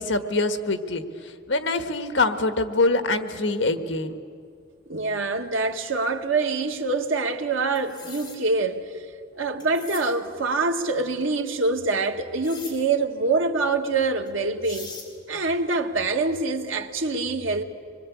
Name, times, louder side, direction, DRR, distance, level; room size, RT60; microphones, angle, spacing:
voice 1, 0.0-4.2, left 2 dB, 65° left, 1.6 m, -24 dB
voice 2, 4.9-9.1 9.4-14.9 15.3-17.6, right 3 dB, 80° right, 1.8 m, -25 dB
sound 1, 7.8-8.4 9.6-10.1 12.4-12.8 14.3-14.4 14.6-15.1, left 4 dB, 20° left, 4.8 m, -40 dB
26.0 x 22.0 x 8.5 m
head